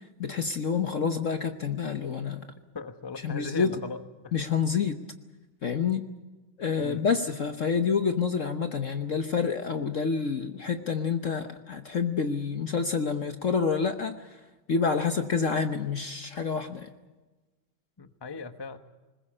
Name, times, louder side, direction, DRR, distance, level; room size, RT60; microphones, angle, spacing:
voice 1, 0.2-2.5 3.2-3.8 4.3-5.0 5.6-6.1 6.6-14.3 14.7-16.9, left 5 dB, 50° left, 8 dB, 1.0 m, -28 dB
voice 2, 2.7-4.3 6.8-7.0 18.0-18.8, left 4 dB, 20° left, 9 dB, 0.6 m, -38 dB
21.0 x 20.5 x 8.6 m, 1.2 s
omnidirectional pair, 2.3 m